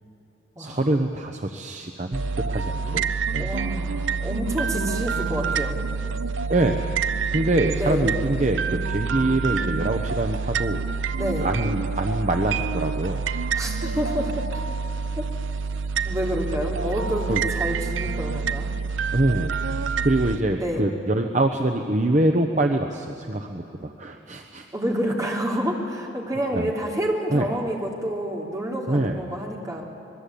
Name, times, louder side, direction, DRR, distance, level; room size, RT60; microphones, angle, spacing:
voice 1, 0.6-3.0 3.3-3.5 6.5-6.8 7.3-10.9 11.4-13.6 13.9-14.0 17.3-17.4 19.1-19.5 20.0-24.7 26.5-26.7 27.3-27.5 28.9-29.3, right 1 dB, 40° right, 4 dB, 1.0 m, -24 dB
sound 1, 2.1-20.4, right 5 dB, 80° right, 0.7 m, -27 dB
voice 2, 3.4-5.8 7.7-8.1 11.2-11.5 13.6-14.6 15.2-15.3 16.0-18.7 20.6-20.8 24.7-29.8, equal, 15° right, -1 dB, 3.2 m, -28 dB
26.0 x 20.5 x 8.6 m, 2.8 s
head